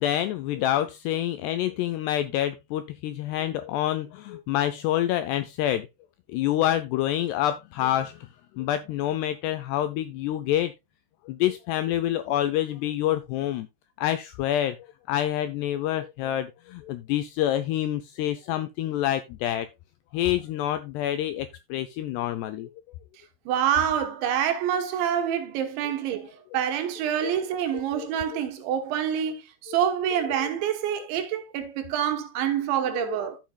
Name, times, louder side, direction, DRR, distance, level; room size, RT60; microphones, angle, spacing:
voice 1, 0.0-5.9 6.3-8.2 8.6-10.7 11.3-13.7 14.0-14.8 15.1-19.7 20.1-22.7 27.2-27.3 27.7-28.1 33.0-33.3, left 12 dB, 85° left, 2.4 m, -27 dB
voice 2, 23.5-33.4, right 9 dB, 75° right, 3.4 m, -27 dB
13.5 x 7.3 x 2.3 m
omnidirectional pair, 5.4 m